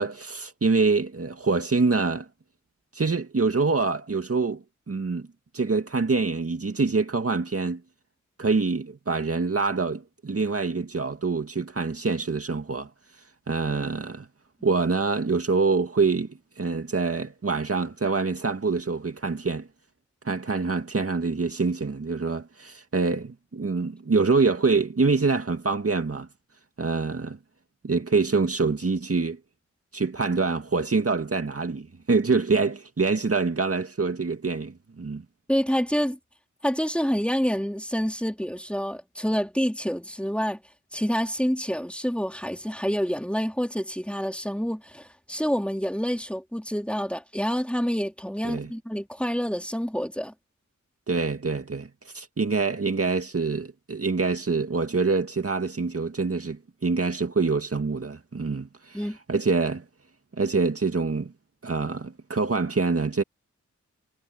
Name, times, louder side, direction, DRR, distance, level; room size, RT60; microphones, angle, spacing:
voice 1, 0.0-2.3 2.9-5.3 5.5-7.8 8.4-12.9 13.5-14.3 14.6-16.3 16.6-19.7 20.2-26.3 26.8-27.4 27.8-29.4 29.9-35.2 48.5-48.7 51.1-59.0 59.3-59.8 60.4-61.3 61.6-63.2, right 4 dB, 50° right, 2.1 m, -25 dB
voice 2, 35.5-36.2 36.6-40.6 40.9-50.3 58.9-59.2, equal, 5° left, 3.8 m, -27 dB
cardioid pair, 50°, 30 cm